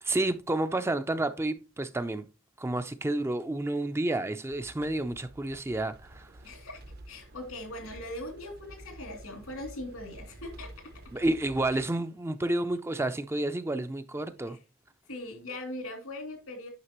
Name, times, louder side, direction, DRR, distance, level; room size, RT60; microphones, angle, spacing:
voice 1, 0.0-2.3 2.6-6.3 11.1-14.6, right 2 dB, 10° right, 0.4 m, -30 dB
sound 1, 4.5-11.8, right 1 dB, 50° right, 0.7 m, -50 dB
voice 2, 6.4-10.7 11.7-11.8 14.5-14.6 15.1-16.7, left 1 dB, 90° left, 2.7 m, -40 dB
9.6 x 5.7 x 3.0 m
head